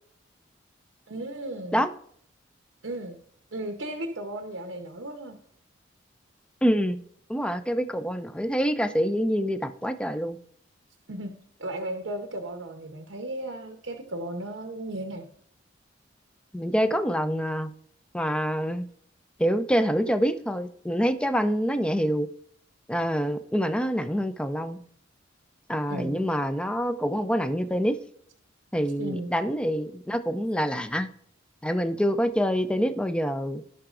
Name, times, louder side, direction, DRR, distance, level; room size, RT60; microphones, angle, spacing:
voice 1, 1.1-1.8 2.8-3.2 3.5-5.4 11.1-11.3 11.6-15.3 25.9-26.2 29.0-29.3, right 1 dB, 75° right, 4 dB, 0.8 m, -35 dB
voice 2, 6.6-7.0 7.3-10.4 16.5-17.7 18.1-18.8 19.4-22.3 22.9-24.8 25.7-28.0 28.7-31.1 31.6-33.6, equal, 5° left, 10 dB, 0.4 m, -26 dB
16.0 x 5.8 x 2.5 m, 0.63 s
head